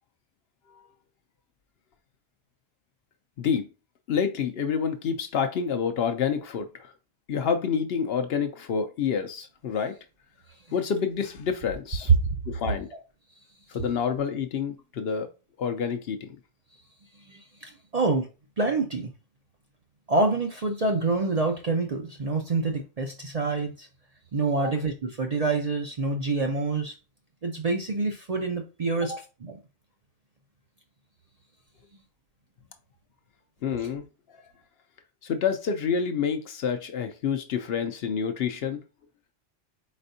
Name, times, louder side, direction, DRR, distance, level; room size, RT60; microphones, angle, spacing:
voice 1, 3.4-3.7 4.1-6.9 7.3-10.0 10.7-12.1 12.5-12.9 13.7-15.3 15.6-16.3 33.6-34.0 35.2-38.8, left 6 dB, 65° left, 0.7 m, -28 dB
voice 2, 17.3-18.3 18.6-19.1 20.1-23.9 24.3-27.0 27.4-29.6 33.7-33.9, right 3 dB, 45° right, 0.5 m, -27 dB
4.3 x 4.2 x 2.6 m
omnidirectional pair, 1.2 m